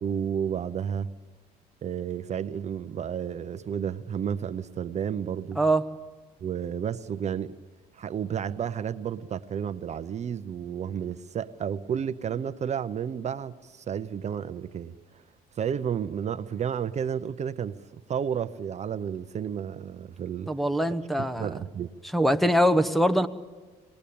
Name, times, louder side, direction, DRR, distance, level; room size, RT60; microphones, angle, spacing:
voice 1, 0.0-1.1 1.8-5.6 6.4-7.6 7.9-15.2 15.6-20.5 21.2-21.9, right 8 dB, 40° right, 0.8 m, -31 dB
voice 2, 20.5-21.5 22.1-23.3, equal, ahead, 1.1 m, -23 dB
26.5 x 19.5 x 8.6 m
cardioid pair, 110°, 17 cm